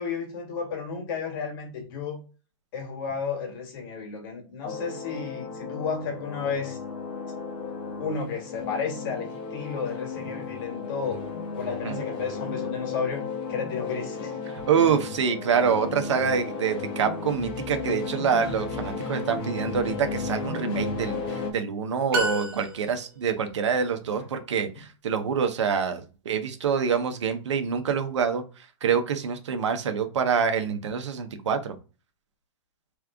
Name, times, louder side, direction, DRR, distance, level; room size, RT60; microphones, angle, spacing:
voice 1, 0.0-2.2 2.7-6.8 8.0-11.2 11.5-13.2 13.5-14.3, left 5 dB, 45° left, 1.9 m, -32 dB
sound 1, 4.6-21.5, left 4 dB, 30° left, 1.2 m, -34 dB
voice 2, 14.5-28.4 28.8-31.7, right 6 dB, 75° right, 1.0 m, -26 dB
sound 2, 22.1-23.3, equal, 55° right, 1.3 m, -29 dB
3.4 x 3.3 x 3.7 m
hypercardioid pair, 150°, 15 cm